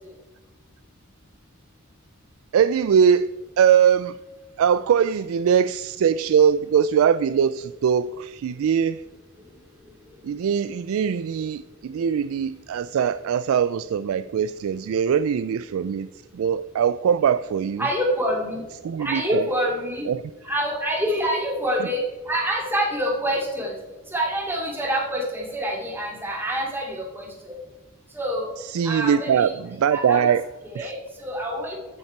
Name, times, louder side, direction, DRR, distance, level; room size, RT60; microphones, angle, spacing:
voice 1, 2.5-4.2 4.6-9.0 10.2-16.1 16.3-17.9 18.8-19.5 20.1-20.2 28.6-30.4 30.8-30.9, right 7 dB, 70° right, 0.3 m, -21 dB
voice 2, 17.8-18.6 19.0-20.0 20.4-23.8 24.1-27.6 28.1-28.5 28.8-29.5 29.9-30.2 30.7-31.8, equal, 10° right, 2.5 m, -26 dB
14.5 x 5.8 x 4.5 m
head